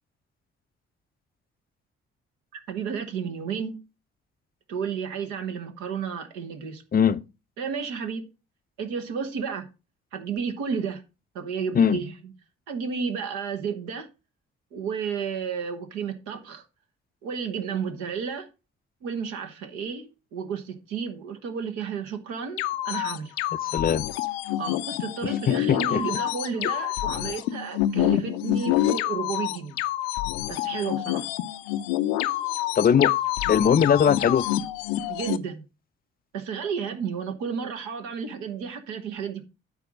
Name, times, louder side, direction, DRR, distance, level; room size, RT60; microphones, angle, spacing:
voice 1, 2.5-3.8 4.7-6.8 7.6-8.3 8.8-9.7 10.1-11.0 11.3-12.1 12.7-14.1 14.7-16.6 17.2-18.5 19.0-23.3 23.8-23.9 24.6-29.8 30.5-31.3 35.1-35.6 36.3-39.4, right 6 dB, 65° right, 1.3 m, -32 dB
sound 1, 22.6-35.4, left 14 dB, 70° left, 0.6 m, -27 dB
voice 2, 23.6-24.1 25.2-26.0 32.8-33.1 33.5-34.5, left 7 dB, 30° left, 0.5 m, -20 dB
9.6 x 4.2 x 6.0 m
figure-of-eight pair, 40°, 33 cm